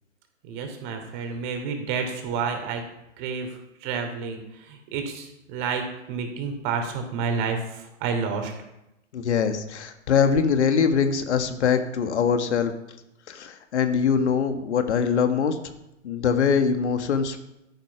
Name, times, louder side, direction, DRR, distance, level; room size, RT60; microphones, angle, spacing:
voice 1, 0.4-2.8 3.2-8.5, right 5 dB, 40° right, 5 dB, 3.3 m, -30 dB
voice 2, 9.1-12.7 13.3-15.7 16.0-17.4, left 6 dB, 60° left, 8 dB, 1.8 m, -23 dB
13.0 x 10.0 x 5.8 m, 0.88 s
hypercardioid pair, 120°, 38 cm